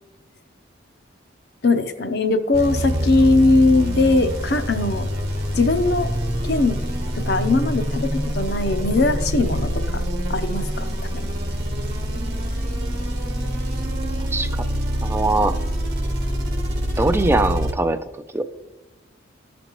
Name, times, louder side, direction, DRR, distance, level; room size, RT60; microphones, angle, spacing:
voice 1, 1.6-5.1 5.6-6.1 6.4-6.7 7.1-10.0 10.3-11.3, left 2 dB, 60° left, 8 dB, 0.7 m, -20 dB
sound 1, 2.5-17.7, equal, 50° right, 1.1 m, -25 dB
voice 2, 15.0-15.6 17.0-18.0 18.3-18.4, right 2 dB, 10° right, 10 dB, 0.4 m, -21 dB
14.5 x 5.2 x 3.0 m, 1.1 s
head